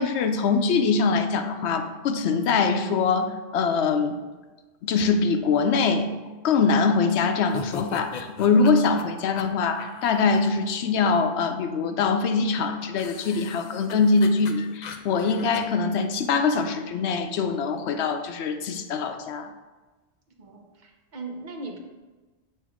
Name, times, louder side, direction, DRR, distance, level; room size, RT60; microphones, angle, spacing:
voice 1, 0.0-4.1 4.8-6.1 6.4-19.5, left 4 dB, 80° left, 7 dB, 0.8 m, -23 dB
sound 1, 7.5-10.5 13.0-15.6, left 5 dB, 55° left, 0.5 m, -40 dB
voice 2, 20.4-21.8, right 3 dB, 50° right, 3 dB, 0.8 m, -38 dB
7.4 x 3.0 x 4.7 m, 1.3 s
omnidirectional pair, 1.1 m